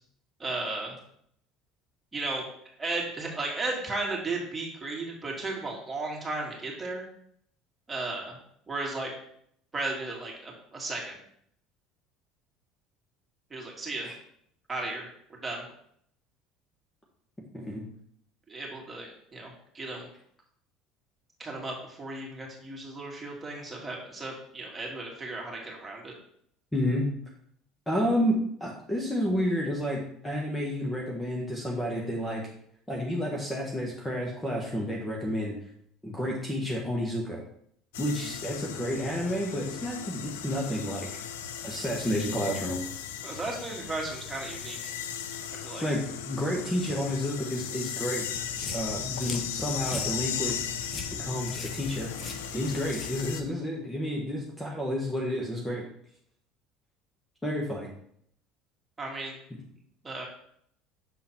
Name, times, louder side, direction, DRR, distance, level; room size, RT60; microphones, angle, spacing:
voice 1, 0.4-1.0 2.1-2.4 2.8-7.0 7.9-8.4 8.7-9.1 9.7-11.2 13.5-14.1 14.7-15.1 15.4-15.6 18.5-20.1 21.4-26.1 43.2-44.8 45.6-45.8 59.0-59.4 60.0-60.2, right 2 dB, 20° right, -2 dB, 2.4 m, -35 dB
voice 2, 17.5-17.8 26.7-27.0 27.9-32.4 32.9-35.5 36.0-37.4 38.0-41.2 41.6-42.8 45.7-48.3 48.7-50.6 51.2-55.8 57.4-57.9, equal, 10° left, -1 dB, 1.4 m, -30 dB
sound 1, 37.9-53.4, left 8 dB, 90° left, 0.5 m, -37 dB
sound 2, 48.3-53.5, left 4 dB, 35° left, 1.2 m, -41 dB
7.1 x 3.8 x 4.4 m, 0.68 s
supercardioid pair, 85°, 0 cm